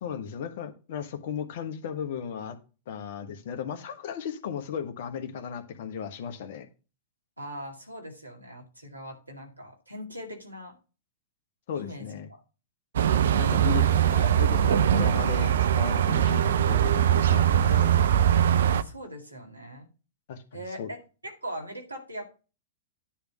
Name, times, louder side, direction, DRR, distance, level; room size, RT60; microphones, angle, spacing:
voice 1, 0.0-2.6 2.9-6.7 11.7-12.3 13.4-17.9 20.3-20.4 20.8-20.9, left 8 dB, 55° left, 8 dB, 1.2 m, -35 dB
voice 2, 7.4-10.8 11.7-12.0 12.3-12.4 18.7-19.9 20.5-21.0 21.2-22.3, equal, 90° right, 2 dB, 2.2 m, -40 dB
sound 1, 13.0-18.8, right 10 dB, 65° right, 0.5 m, -22 dB
10.0 x 3.5 x 6.2 m, 0.32 s
figure-of-eight pair, 100°, 0 cm